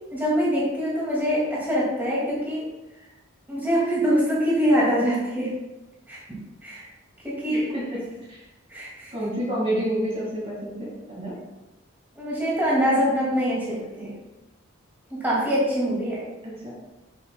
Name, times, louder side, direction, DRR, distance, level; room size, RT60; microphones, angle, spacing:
voice 1, 0.1-2.7 3.5-5.5 6.1-6.2 6.6-6.9 7.2-7.6 8.7-9.1 12.2-14.1 15.1-16.2, equal, 10° right, -7 dB, 2.1 m, -24 dB
voice 2, 7.5-8.0 8.3-8.5 9.1-11.4 16.4-16.8, right 1 dB, 30° right, -6 dB, 1.9 m, -29 dB
7.9 x 7.6 x 2.2 m, 1.0 s
head